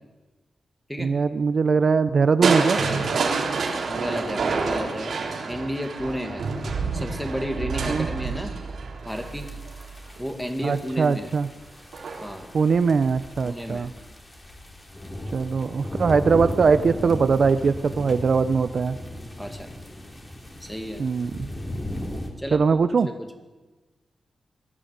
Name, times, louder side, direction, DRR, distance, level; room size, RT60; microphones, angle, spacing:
voice 1, 1.0-2.8 7.9-8.1 10.6-11.5 12.5-13.9 15.3-19.0 21.0-21.5 22.5-23.1, right 5 dB, 50° right, 12 dB, 0.6 m, -21 dB
Crushing, 2.4-10.4 11.9-12.4 12.9-13.0, right 4 dB, 70° right, 3.7 m, -27 dB
voice 2, 3.9-5.2 5.5-6.5 6.9-8.5 9.0-9.5 10.2-11.3 12.2-12.5 13.4-13.9 19.4-19.7 20.6-21.0 22.4-22.6 23.0-23.3, equal, ahead, 5 dB, 2.0 m, -32 dB
sound 1, 9.1-22.3, left 1 dB, 20° left, 3.0 m, -36 dB
20.5 x 14.5 x 9.4 m, 1.2 s
wide cardioid pair, 170°, 0 cm